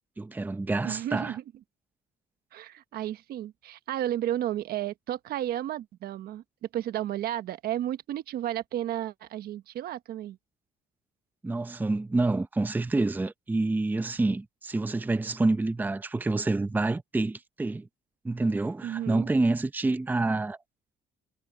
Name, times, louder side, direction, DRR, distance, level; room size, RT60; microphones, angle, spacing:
voice 1, 0.2-1.4 11.4-17.9 18.2-20.6, right 2 dB, 10° right, 0.6 m, -27 dB
voice 2, 0.8-1.4 2.5-6.4 6.7-10.4 18.8-19.3, right 12 dB, 65° right, 1.1 m, -32 dB
cardioid pair, 110°, 17 cm